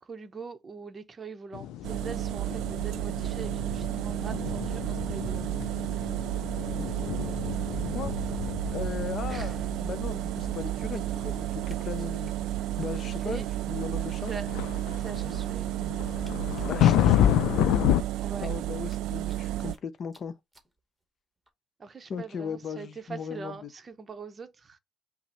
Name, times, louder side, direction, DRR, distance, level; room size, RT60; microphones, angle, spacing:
voice 1, 0.0-5.5 9.3-9.6 13.2-13.5 14.3-14.5 15.0-15.7 18.2-18.5 21.8-24.8, right 5 dB, 30° right, 0.7 m, -42 dB
sound 1, 1.5-18.0, left 12 dB, 85° left, 0.3 m, -30 dB
sound 2, 1.8-19.7, right 15 dB, 80° right, 0.3 m, -32 dB
voice 2, 8.7-12.3 12.8-14.3 16.7-17.4 18.4-20.3 22.1-23.7, left 6 dB, 45° left, 0.6 m, -37 dB
sound 3, 11.0-12.3 12.6-12.7 12.9-13.0 14.0-14.1 15.0-17.3 17.9-18.0 18.3-18.4 18.8-19.8 20.1-20.2 20.5-20.7 21.5-21.6, right 1 dB, 10° right, 1.0 m, -51 dB
5.8 x 2.0 x 4.2 m
cardioid pair, 135°, 0 cm